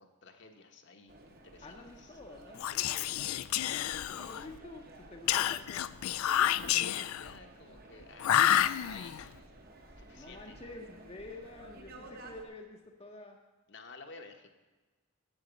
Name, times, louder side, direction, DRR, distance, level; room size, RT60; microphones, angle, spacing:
voice 1, 0.0-2.2 3.6-4.1 5.3-5.5 6.2-8.4 8.8-9.2 10.0-10.6 13.7-14.5, left 3 dB, 55° left, 5 dB, 1.0 m, -52 dB
sound 1, 1.1-12.4, right 2 dB, 45° right, 1.0 m, -54 dB
voice 2, 1.6-3.3 3.9-5.8 10.1-13.4, left 2 dB, 25° left, 2 dB, 0.7 m, -49 dB
Whispering, 2.5-4.5 5.3-7.3 8.2-9.2, left 11 dB, 80° left, 0.3 m, -29 dB
9.0 x 6.5 x 8.1 m, 1.3 s
head